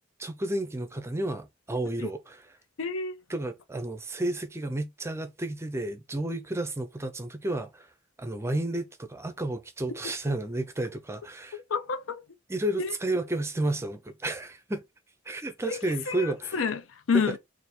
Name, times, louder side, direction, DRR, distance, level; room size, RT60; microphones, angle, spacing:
voice 1, 0.2-2.4 3.3-7.9 8.2-11.6 12.5-14.8 15.3-16.6, right 1 dB, 15° right, 0.5 m, -31 dB
voice 2, 2.8-3.2 11.5-12.3 12.8-12.9 15.6-17.4, left 5 dB, 90° left, 0.5 m, -29 dB
3.5 x 2.6 x 4.2 m
head